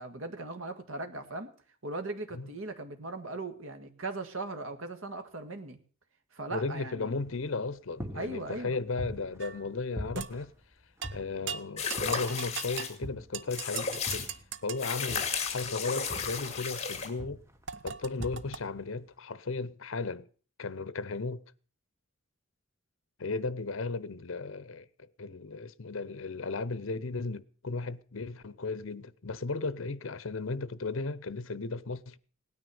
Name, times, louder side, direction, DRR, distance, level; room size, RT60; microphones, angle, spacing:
voice 1, 0.0-1.5 1.8-5.8 6.3-7.2 8.1-8.8, right 2 dB, 75° right, 1.8 m, -38 dB
voice 2, 6.5-10.5 11.1-14.3 14.6-17.4 17.8-20.3 20.6-21.4 23.2-24.9 25.2-32.2, left 3 dB, 70° left, 0.8 m, -35 dB
sound 1, 7.2-7.7 8.0-9.7 10.0-11.6 12.0-12.5 13.0-14.6 15.1-16.8 17.2-17.7 18.2-18.8, equal, 15° right, 1.3 m, -43 dB
sound 2, 9.4-9.6 10.2-10.4 11.0-11.2 11.5-12.9 13.3-14.8 17.7-18.6, right 7 dB, 60° right, 0.8 m, -39 dB
sound 3, 11.8-12.9 13.5-14.3 14.8-17.1, left 6 dB, 30° left, 2.4 m, -34 dB
17.5 x 9.7 x 7.0 m
head